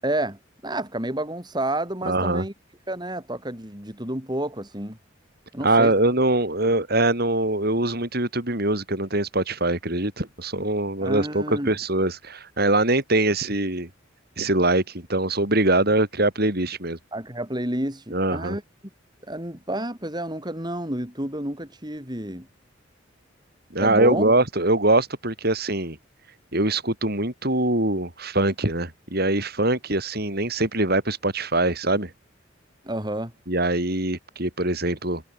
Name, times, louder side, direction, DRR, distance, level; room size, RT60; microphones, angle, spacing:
voice 1, 0.0-2.5 2.9-5.0 5.5-5.9 11.0-11.7 17.1-18.6 19.3-22.5 23.8-24.3 32.8-33.3, right 1 dB, 20° right, 7.2 m, -30 dB
voice 2, 2.0-2.5 5.6-13.9 14.4-17.0 18.1-18.6 23.7-26.0 26.5-32.1 33.5-35.2, right 2 dB, 50° right, 6.4 m, -23 dB
head